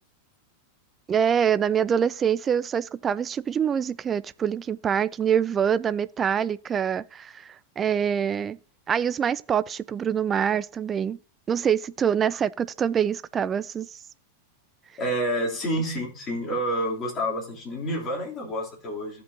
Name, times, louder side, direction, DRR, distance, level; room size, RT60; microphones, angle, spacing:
voice 1, 1.1-8.6 8.9-11.2 11.5-13.9, right 8 dB, 20° right, 0.3 m, -25 dB
voice 2, 15.0-19.2, equal, 25° left, 2.9 m, -28 dB
14.5 x 5.3 x 2.7 m
figure-of-eight pair, 90°, 0 cm